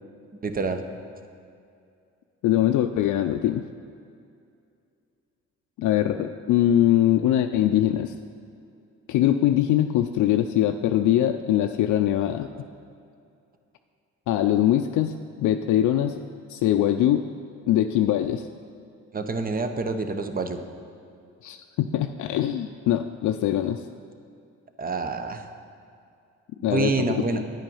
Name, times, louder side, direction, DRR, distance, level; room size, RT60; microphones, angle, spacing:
voice 1, 0.4-0.8 19.1-20.6 24.8-25.5 26.6-27.4, right 3 dB, 30° right, 8 dB, 0.8 m, -27 dB
voice 2, 2.4-3.7 5.8-8.1 9.1-12.7 14.3-16.2 16.5-17.2 17.7-18.5 21.4-23.8 26.6-27.2, left 12 dB, 75° left, 6 dB, 0.5 m, -22 dB
9.1 x 8.9 x 5.5 m, 2.5 s
cardioid pair, 90°, 30 cm